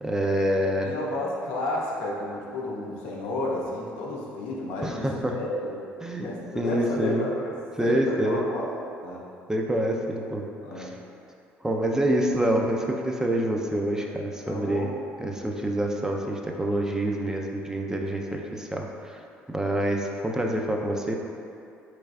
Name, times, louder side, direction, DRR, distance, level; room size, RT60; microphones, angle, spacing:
voice 1, 0.0-0.9 4.8-5.4 6.0-6.3 6.6-7.2 7.8-8.5 9.5-10.4 10.8-10.9 11.6-14.9 15.2-19.2 19.5-21.1, right 1 dB, 15° right, 1 dB, 0.4 m, -26 dB
voice 2, 0.8-5.9 6.2-8.7 9.0-9.3 10.6-11.0 14.5-14.9 18.3-18.5, left 2 dB, 85° left, -3 dB, 0.6 m, -32 dB
3.9 x 3.3 x 2.3 m, 2.5 s
supercardioid pair, 70°, 5 cm